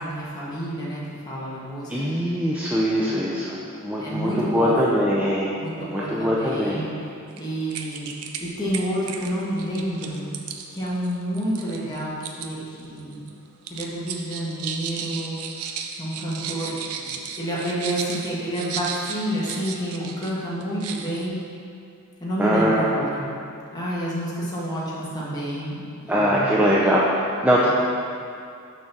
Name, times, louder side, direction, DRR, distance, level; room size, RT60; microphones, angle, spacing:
voice 1, 0.0-2.1 3.0-3.3 4.0-4.8 5.6-6.9 7.4-8.1 8.4-10.3 10.7-13.3 13.7-15.4 16.0-16.7 17.3-21.4 22.2-23.3 23.7-26.7 27.6-27.7, equal, 20° left, -7 dB, 1.4 m, -29 dB
voice 2, 1.9-5.5 5.8-6.8 22.4-23.1 26.1-27.7, equal, 5° right, -6 dB, 0.4 m, -22 dB
sound 1, 7.3-7.4 7.7-8.4 8.7-12.5 12.8-13.3 13.6-20.3 20.6-21.3, right 6 dB, 80° right, 0.5 m, -34 dB
6.2 x 3.9 x 5.8 m, 2.5 s
head